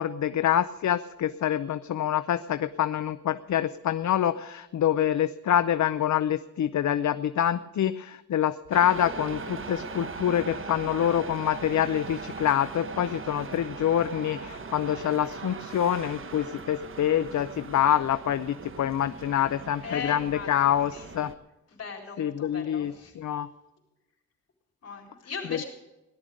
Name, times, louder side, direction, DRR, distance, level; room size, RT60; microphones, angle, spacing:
voice 1, 0.0-21.3 22.2-23.5 25.5-25.6, left 10 dB, 75° left, 12 dB, 0.6 m, -26 dB
sound 1, 8.7-21.3, right 4 dB, 45° right, 1.1 m, -40 dB
voice 2, 19.8-21.1 21.7-23.1 24.8-25.6, left 5 dB, 55° left, 0 dB, 4.2 m, -38 dB
17.5 x 11.5 x 5.1 m, 1.0 s
wide cardioid pair, 145°, 29 cm